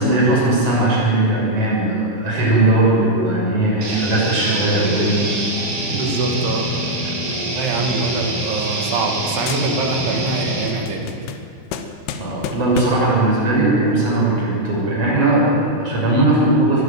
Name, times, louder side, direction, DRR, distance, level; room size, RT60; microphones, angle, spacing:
voice 1, 0.0-5.2 7.0-7.1 12.2-16.8, right 2 dB, 30° right, -4 dB, 7.7 m, -18 dB
sound 1, 3.8-10.7, right 1 dB, 50° right, 6.0 m, -25 dB
voice 2, 5.9-7.0 7.5-11.1 16.1-16.3, right 3 dB, 80° right, 2 dB, 4.6 m, -24 dB
sound 2, 7.8-9.2 9.5-10.1 10.5-13.2, left 7 dB, 85° left, 3.5 m, -32 dB
23.5 x 12.5 x 9.3 m, 2.5 s
omnidirectional pair, 5.3 m